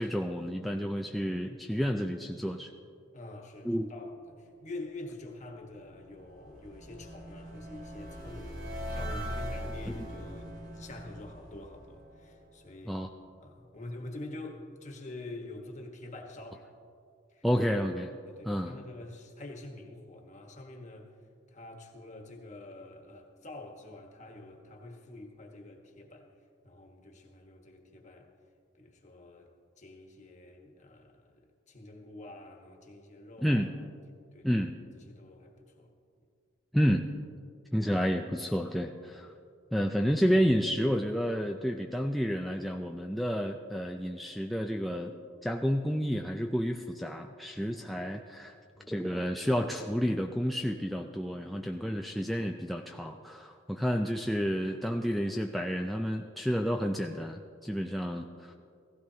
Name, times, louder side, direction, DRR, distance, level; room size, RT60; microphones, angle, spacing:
voice 1, 0.0-2.7 3.6-3.9 9.9-10.1 12.9-13.1 17.4-18.1 18.4-18.7 33.4-33.7 34.4-34.8 36.7-37.1 37.7-39.3 39.7-45.1 45.4-48.5 48.9-58.5, equal, ahead, 2 dB, 0.3 m, -30 dB
voice 2, 3.1-8.6 8.9-13.0 13.4-16.6 17.3-17.4 18.2-21.1 21.5-26.3 26.6-28.3 28.8-29.5 29.8-31.4 31.7-33.6 34.3-34.6 34.9-35.9 48.7-49.0, left 2 dB, 40° left, 2 dB, 1.4 m, -46 dB
sound 1, 5.6-12.8, equal, 75° right, 2.3 m, -41 dB
16.5 x 15.5 x 2.8 m, 2.3 s
head